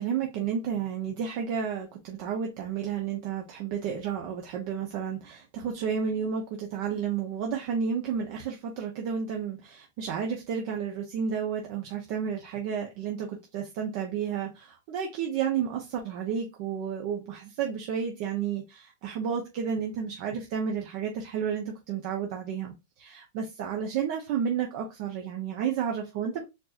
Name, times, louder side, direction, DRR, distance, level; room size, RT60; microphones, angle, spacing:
voice 1, 0.0-26.4, right 7 dB, 55° right, 0.8 m, -31 dB
4.4 x 2.9 x 2.5 m
hypercardioid pair, 125°, 0 cm